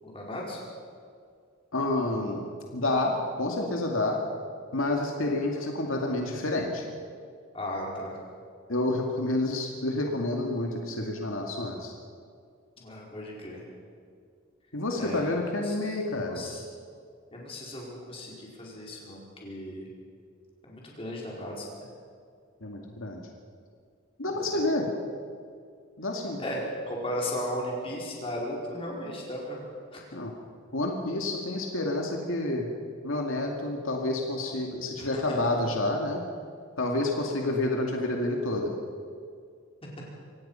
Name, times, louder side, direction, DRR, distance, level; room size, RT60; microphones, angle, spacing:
voice 1, 0.0-0.6 2.0-2.2 7.5-8.1 12.8-13.6 15.0-15.2 15.6-16.6 17.3-19.9 20.7-21.9 24.4-24.6 26.4-26.6 26.9-30.0 35.0-35.5, left 1 dB, 25° left, -3 dB, 5.0 m, -36 dB
voice 2, 1.7-2.4 2.7-4.2 4.7-6.8 8.7-11.9 14.7-16.4 22.6-23.2 24.2-24.9 26.0-26.4 30.1-30.3 30.7-32.7 33.0-36.2 36.8-38.7, left 2 dB, 75° left, 1 dB, 2.4 m, -29 dB
25.5 x 18.0 x 5.8 m, 2.2 s
head